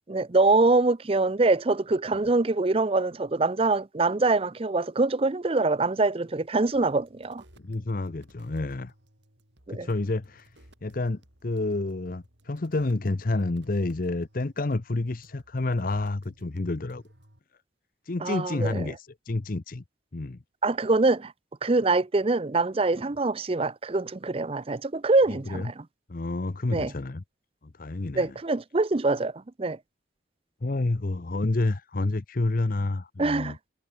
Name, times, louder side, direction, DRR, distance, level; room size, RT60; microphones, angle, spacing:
voice 1, 0.1-7.4 9.7-9.9 18.2-18.9 20.6-21.3 21.6-25.8 26.7-26.9 28.1-29.8 33.2-33.6, right 3 dB, 30° right, 0.5 m, -24 dB
sound 1, 6.7-17.4, right 1 dB, 65° right, 7.3 m, -58 dB
voice 2, 7.6-8.9 9.7-10.5 10.8-17.0 18.0-19.8 20.1-20.4 25.5-25.7 26.1-27.2 27.8-28.3 30.6-33.6, left 2 dB, 45° left, 0.7 m, -29 dB
head